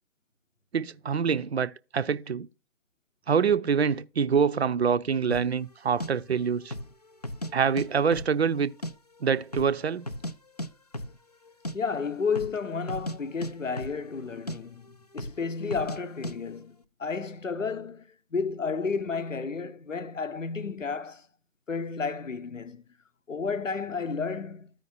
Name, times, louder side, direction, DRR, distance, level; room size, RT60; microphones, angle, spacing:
voice 1, 0.7-2.5 3.3-6.7 7.5-8.7 9.2-10.1, right 6 dB, 60° right, 0.6 m, -25 dB
sound 1, 5.3-5.5 6.0-6.1 6.6-6.9 7.2-7.9 8.1-8.9 9.2-9.3 9.5-10.3 10.6-10.7 10.9-11.2 11.5-11.8 12.3-12.6 12.9-14.2 14.5-14.6 15.2-15.4 15.7-16.4, equal, 35° left, 0.4 m, -35 dB
voice 2, 11.7-21.3 21.7-22.8 23.3-24.7, left 5 dB, 85° left, 0.8 m, -32 dB
14.0 x 5.2 x 2.7 m
figure-of-eight pair, 140°, 37 cm